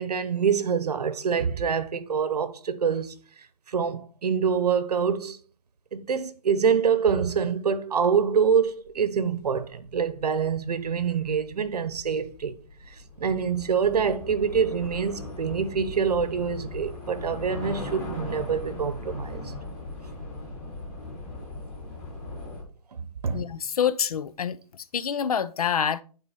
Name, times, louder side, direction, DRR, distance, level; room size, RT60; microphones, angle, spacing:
voice 1, 0.0-3.1 3.7-5.4 5.9-12.5 12.9-19.5 23.0-23.5, right 6 dB, 80° right, 1.0 m, -26 dB
Train / Subway metro underground, 9.9-22.6, left 2 dB, 10° left, 1.2 m, -39 dB
voice 2, 23.3-24.6 24.9-26.0, left 8 dB, 65° left, 0.7 m, -26 dB
9.4 x 3.9 x 4.1 m
hypercardioid pair, 180°, 20 cm